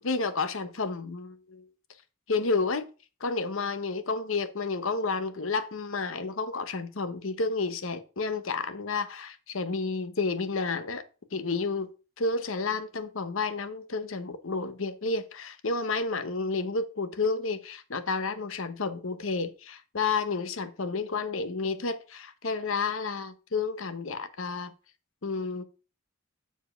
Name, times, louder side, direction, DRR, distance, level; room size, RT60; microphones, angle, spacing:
voice 1, 0.0-1.6 2.3-2.9 3.2-11.0 11.3-11.9 12.2-24.7 25.2-25.6, left 4 dB, 70° left, 0.9 m, -31 dB
7.2 x 4.7 x 5.6 m
head